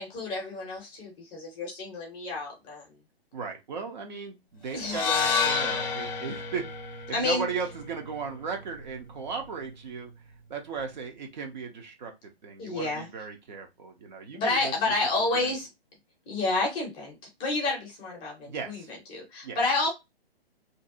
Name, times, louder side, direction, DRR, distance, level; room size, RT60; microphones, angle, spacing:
voice 1, 0.0-2.8 4.7-5.0 7.1-7.4 12.6-13.1 14.3-15.7 16.3-17.1 17.4-18.8 19.1-19.9, left 2 dB, 15° left, 0.6 m, -29 dB
voice 2, 3.3-10.1 10.5-12.1 12.4-14.9 15.3-15.5 18.5-18.9 19.4-19.6, right 5 dB, 45° right, 0.7 m, -36 dB
sound 1, 4.8-9.0, left 6 dB, 50° left, 0.7 m, -30 dB
2.6 x 2.2 x 2.5 m
figure-of-eight pair, 130°, 31 cm